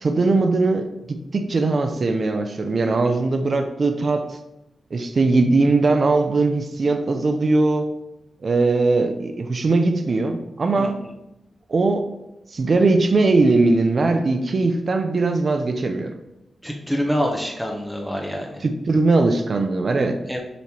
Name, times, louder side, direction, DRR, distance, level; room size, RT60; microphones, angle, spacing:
voice 1, 0.0-4.3 4.9-7.9 8.4-11.0 11.7-12.1 12.5-16.1 18.6-20.2, right 3 dB, 40° right, 6 dB, 0.5 m, -20 dB
voice 2, 16.6-18.5 20.3-20.4, equal, ahead, 0 dB, 0.8 m, -26 dB
6.9 x 3.2 x 4.3 m, 0.91 s
wide cardioid pair, 160°, 0 cm